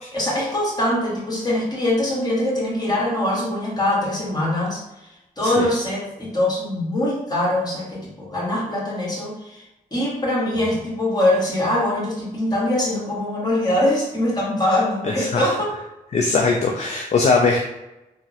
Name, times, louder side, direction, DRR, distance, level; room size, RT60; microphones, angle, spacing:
voice 1, 0.1-4.8 5.4-9.6 9.9-15.8, left 1 dB, 25° left, -4 dB, 1.5 m, -23 dB
voice 2, 15.0-15.5 16.1-17.6, left 4 dB, 45° left, 1 dB, 0.4 m, -20 dB
3.4 x 2.1 x 2.8 m, 0.95 s
cardioid pair, 60°, 16 cm